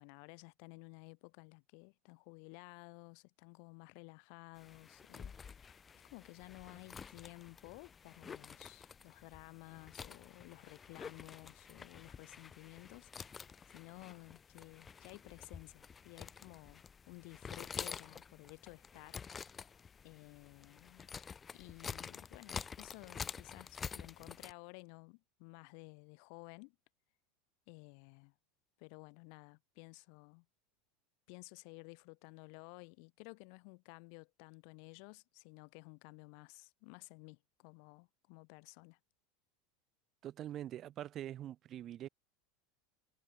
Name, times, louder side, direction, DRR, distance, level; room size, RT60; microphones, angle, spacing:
voice 1, 0.0-5.8 6.1-13.4 13.7-19.2 20.0-21.1 21.5-26.8 27.7-28.3 28.8-30.5 31.3-39.0, left 40 dB or more, 60° left, 3.8 m, -54 dB
sound 1, 4.6-24.5, left 6 dB, 20° left, 0.4 m, -49 dB
voice 2, 40.2-42.1, right 12 dB, 35° right, 3.3 m, -44 dB
supercardioid pair, 130°, 0 cm